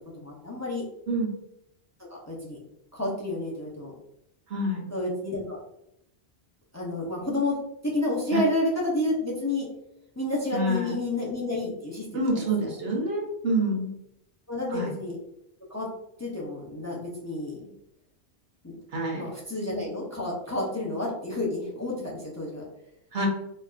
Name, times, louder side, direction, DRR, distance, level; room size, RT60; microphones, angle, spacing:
voice 1, 0.2-0.8 2.3-2.6 2.9-3.9 4.9-5.6 6.7-7.6 7.8-9.7 10.2-12.5 14.5-15.2 15.7-15.9 16.2-17.6 18.6-18.8 19.1-22.6, left 2 dB, 20° left, -4 dB, 0.7 m, -30 dB
voice 2, 4.5-4.8 8.3-8.4 10.5-11.0 12.1-13.9 14.7-14.9 18.9-19.2 23.1-23.3, right 1 dB, 70° right, 0 dB, 1.1 m, -27 dB
4.3 x 2.8 x 2.4 m, 0.80 s
omnidirectional pair, 1.1 m